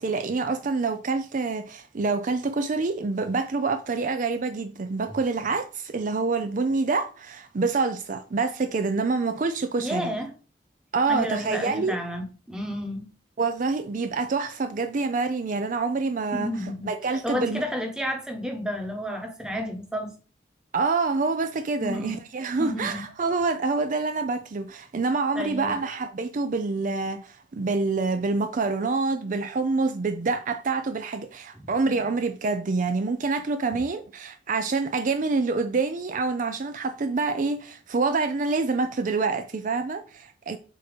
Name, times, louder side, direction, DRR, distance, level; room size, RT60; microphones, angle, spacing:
voice 1, 0.0-10.1 10.9-12.0 13.4-17.6 20.7-40.6, right 4 dB, 45° right, 0.4 m, -26 dB
voice 2, 9.8-10.3 11.1-13.1 16.3-16.9 17.2-20.1 21.8-22.2 22.6-23.0 25.3-25.8 31.6-31.7, equal, 5° right, 1.1 m, -31 dB
7.4 x 2.9 x 5.2 m
head